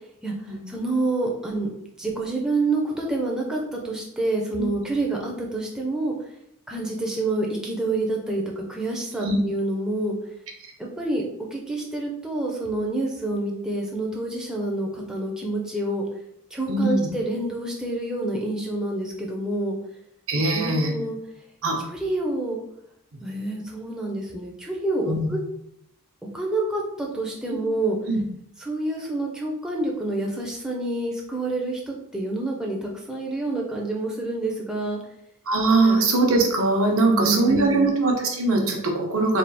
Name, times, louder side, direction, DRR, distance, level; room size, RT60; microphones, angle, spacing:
voice 1, 0.2-1.7 2.0-6.1 6.7-10.2 11.0-11.2 11.5-16.0 16.5-19.8 20.5-21.2 21.9-22.6 23.2-25.4 26.3-28.0 28.6-35.0 35.8-36.0 37.1-37.9, right 2 dB, 5° right, -2 dB, 0.5 m, -27 dB
voice 2, 16.7-17.1 20.3-20.9 21.6-21.8 25.0-25.3 28.1-28.2 35.5-39.4, right 2 dB, 65° right, 1 dB, 0.8 m, -21 dB
3.4 x 2.4 x 4.1 m, 0.74 s
head